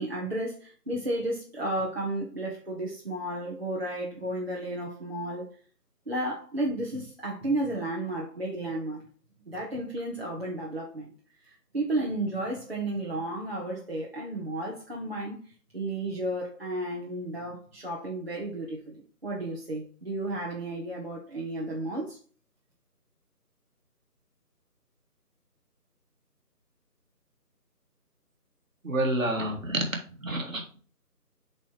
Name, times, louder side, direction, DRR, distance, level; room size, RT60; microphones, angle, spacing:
voice 1, 0.0-5.5 6.1-9.0 9.5-11.1 11.4-15.4 15.7-22.2, right 1 dB, 40° right, 1.1 m, -33 dB
voice 2, 28.8-30.8, right 1 dB, 55° right, 1.8 m, -29 dB
7.7 x 3.3 x 4.6 m
figure-of-eight pair, 175°, 48 cm